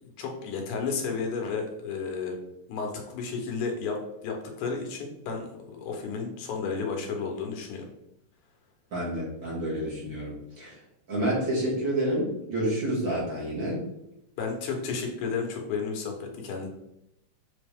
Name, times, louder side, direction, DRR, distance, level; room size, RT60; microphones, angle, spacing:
voice 1, 0.0-2.4 2.7-7.9 14.4-16.7, left 5 dB, 80° left, 2 dB, 2.5 m, -32 dB
voice 2, 8.9-10.8 11.1-13.8, right 1 dB, 40° right, -6 dB, 2.4 m, -29 dB
7.2 x 4.1 x 3.5 m, 0.83 s
omnidirectional pair, 3.5 m